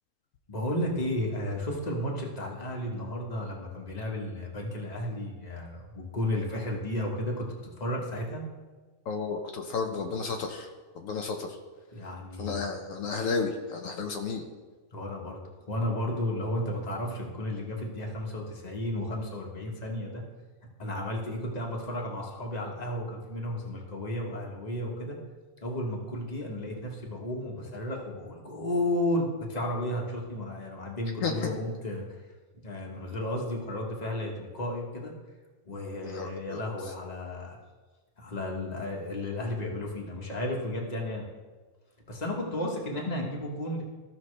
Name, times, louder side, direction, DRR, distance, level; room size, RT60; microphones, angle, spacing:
voice 1, 0.5-7.5 7.8-8.4 11.9-12.7 14.9-15.4 15.7-20.2 20.8-25.2 25.6-32.2 32.6-35.1 35.6-37.6 38.2-41.3 42.1-43.8, left 1 dB, 30° left, -1 dB, 1.5 m, -33 dB
voice 2, 9.1-10.7 10.9-11.6 12.4-14.4 31.2-31.6 36.0-36.6, left 4 dB, 80° left, 3 dB, 1.2 m, -32 dB
15.0 x 5.8 x 3.2 m, 1.3 s
omnidirectional pair, 1.4 m